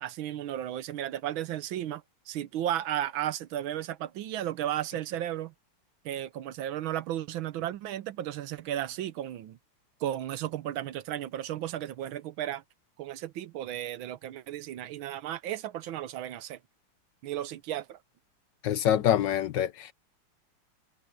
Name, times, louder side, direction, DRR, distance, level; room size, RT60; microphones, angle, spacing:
voice 1, 0.0-5.5 6.0-9.6 10.0-12.6 13.0-16.6 17.2-18.0, right 12 dB, 75° right, 1.5 m, -34 dB
voice 2, 18.6-19.9, left 10 dB, 65° left, 1.2 m, -25 dB
omnidirectional pair, 2.3 m